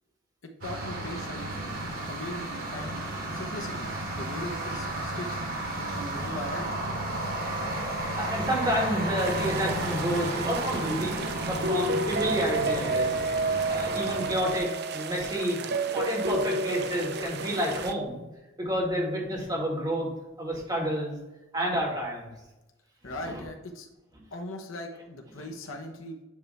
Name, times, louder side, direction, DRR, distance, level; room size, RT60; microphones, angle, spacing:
voice 1, 0.6-1.6 2.1-3.0 3.3-5.4 5.8-6.7 23.0-23.9 24.3-26.2, left 1 dB, 80° left, 3 dB, 1.0 m, -39 dB
sound 1, 0.6-14.4, right 1 dB, 85° right, 2.5 m, -33 dB
voice 2, 8.2-11.1 11.4-13.2 13.7-15.6 15.9-18.2 18.6-20.1 20.4-21.2 21.5-22.3 23.0-23.4, equal, 20° right, -3 dB, 2.0 m, -29 dB
sound 2, 9.2-17.9, right 2 dB, 55° right, 0.5 m, -31 dB
9.6 x 3.4 x 4.2 m, 0.99 s
head